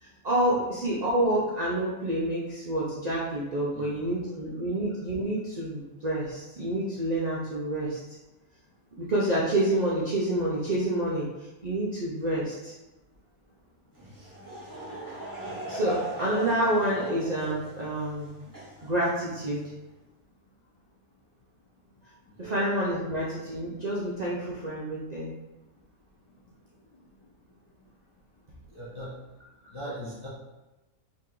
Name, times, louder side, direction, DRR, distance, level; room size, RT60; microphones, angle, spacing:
voice 1, 0.0-8.0 9.0-11.3 11.6-12.7 15.7-18.3 18.8-19.7 22.4-25.3, right 1 dB, 60° right, -6 dB, 0.4 m, -28 dB
voice 2, 3.7-4.4 22.4-22.6 28.7-29.1 29.7-30.3, equal, 50° left, -7 dB, 0.3 m, -40 dB
Laughter / Crowd, 13.9-19.7, right 1 dB, 20° right, 0.7 m, -39 dB
2.9 x 2.7 x 3.7 m, 1.0 s
omnidirectional pair, 1.5 m